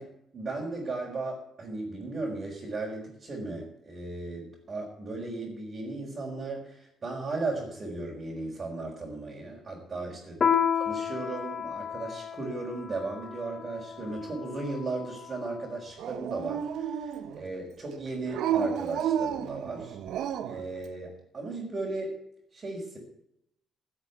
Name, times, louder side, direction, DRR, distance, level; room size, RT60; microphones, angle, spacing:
voice 1, 0.0-10.4 10.8-20.0 20.5-22.1 22.5-23.0, right 3 dB, 40° right, -4 dB, 5.1 m, -36 dB
Piano, 10.4-15.4, left 7 dB, 45° left, 1.3 m, -31 dB
Dog, 16.0-17.5 18.3-20.7, right 9 dB, 80° right, 1.0 m, -31 dB
16.0 x 7.4 x 8.3 m, 0.78 s
cardioid pair, 90°, 0 cm